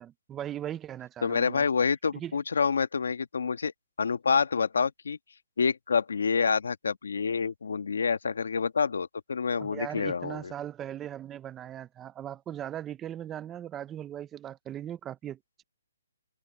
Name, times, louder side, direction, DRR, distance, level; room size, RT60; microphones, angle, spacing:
voice 1, 0.0-1.6 2.1-2.4 9.6-15.6, right 11 dB, 10° right, 0.5 m, -39 dB
voice 2, 1.2-3.7 4.0-5.2 5.6-10.5, left 5 dB, 75° left, 1.3 m, -27 dB
hypercardioid pair, 175°, 0 cm